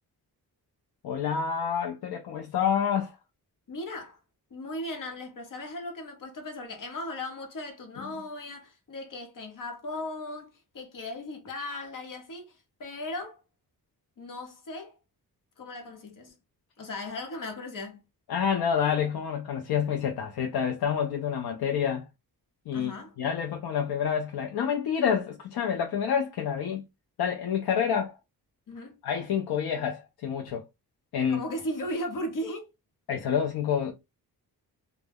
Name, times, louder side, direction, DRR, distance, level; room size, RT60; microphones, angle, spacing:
voice 1, 1.0-3.2 18.3-22.1 22.7-26.8 27.2-28.2 29.0-30.6 31.1-31.4 33.1-33.9, left 7 dB, 75° left, 0.5 m, -28 dB
voice 2, 3.7-4.2 4.5-13.4 14.2-15.0 15.6-16.3 16.8-18.0 22.7-23.1 28.7-29.0 31.3-32.7, left 1 dB, 55° left, 0.9 m, -37 dB
2.2 x 2.1 x 3.3 m
wide cardioid pair, 125°, 38 cm